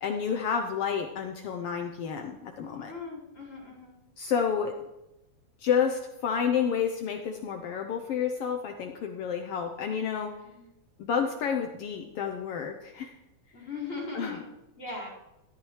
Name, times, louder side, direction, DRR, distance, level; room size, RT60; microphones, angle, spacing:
voice 1, 0.0-2.9 4.2-4.8 5.6-10.3 11.0-13.2 14.1-14.4, left 7 dB, 75° left, 4 dB, 1.4 m, -30 dB
voice 2, 2.9-4.0 10.4-10.7 13.5-14.4 14.8-15.1, left 3 dB, 30° left, -5 dB, 4.8 m, -39 dB
13.5 x 12.5 x 3.2 m, 0.92 s
omnidirectional pair, 3.3 m